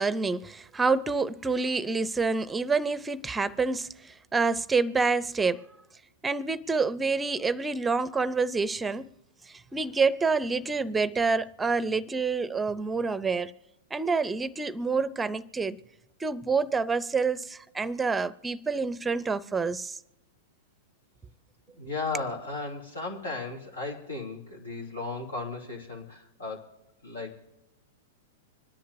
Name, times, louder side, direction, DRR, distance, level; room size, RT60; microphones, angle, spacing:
voice 1, 0.0-5.7 6.2-9.1 9.5-13.5 13.9-15.8 16.2-20.0, right 4 dB, 10° right, 0.6 m, -27 dB
voice 2, 21.8-26.7 27.0-27.4, left 3 dB, 85° left, 3.2 m, -35 dB
25.5 x 10.5 x 2.7 m
hypercardioid pair, 110°, 0 cm